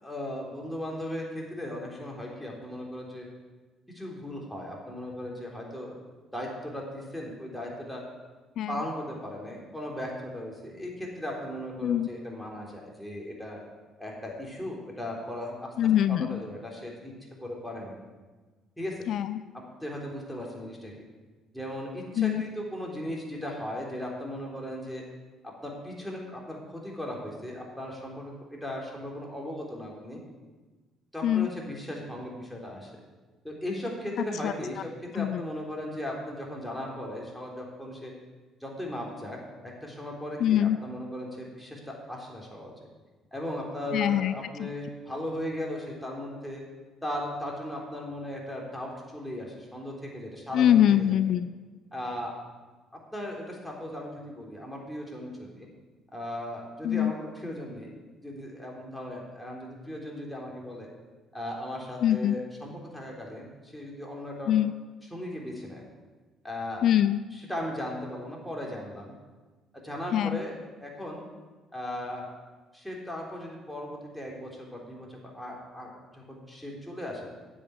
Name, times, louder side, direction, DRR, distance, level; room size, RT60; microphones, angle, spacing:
voice 1, 0.0-3.3 3.9-6.0 6.3-8.0 8.7-13.6 14.0-15.7 16.1-17.1 17.4-18.0 18.8-19.0 19.5-21.1 21.5-25.0 25.6-30.2 31.1-33.0 33.4-38.1 38.6-39.4 39.6-42.7 43.3-46.6 47.0-51.2 51.9-52.4 53.1-55.7 56.1-58.0 58.2-60.9 61.3-64.5 65.1-65.8 66.4-66.9 67.3-69.1 69.8-71.3 71.7-72.3 72.7-77.3, left 1 dB, 5° left, -2 dB, 3.6 m, -37 dB
voice 2, 15.8-16.4 19.1-19.4 22.2-22.4 31.2-31.5 34.4-34.5 35.1-35.4 40.4-40.8 43.9-44.3 44.6-44.7 50.5-51.5 56.8-57.1 62.0-62.4 64.5-64.7 66.8-67.2 70.1-70.4, left 10 dB, 65° left, 13 dB, 0.4 m, -23 dB
10.0 x 7.8 x 8.1 m, 1.3 s
cardioid pair, 85°, 0 cm